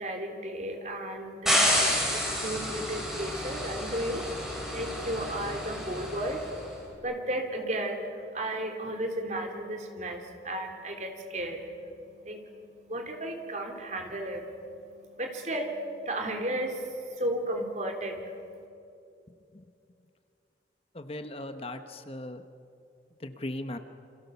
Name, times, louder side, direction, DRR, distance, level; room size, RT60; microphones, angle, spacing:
voice 1, 0.0-18.7, right 1 dB, 40° right, 3 dB, 3.4 m, -34 dB
sound 1, 1.5-6.6, equal, 5° right, 5.5 m, -29 dB
voice 2, 20.9-22.4 23.2-23.8, left 1 dB, 35° left, 8 dB, 1.0 m, -38 dB
28.5 x 26.5 x 7.1 m, 2.6 s
head